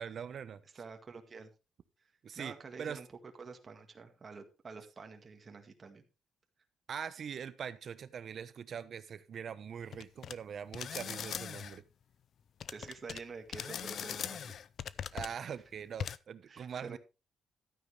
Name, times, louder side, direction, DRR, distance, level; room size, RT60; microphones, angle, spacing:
voice 1, 0.0-0.6 2.2-3.0 6.9-11.8 15.1-17.0, right 7 dB, 55° right, 14 dB, 1.0 m, -42 dB
voice 2, 0.7-1.5 2.0-3.1 3.4-6.0 12.7-14.5 15.3-15.4 16.5-17.0, right 4 dB, 35° right, 4 dB, 1.9 m, -48 dB
sound 1, 9.9-10.3 10.7-11.8 12.6-13.2 13.5-15.4 16.0-16.2, left 8 dB, 60° left, 0.5 m, -40 dB
12.5 x 9.3 x 3.3 m, 0.29 s
cardioid pair, 90°, 0 cm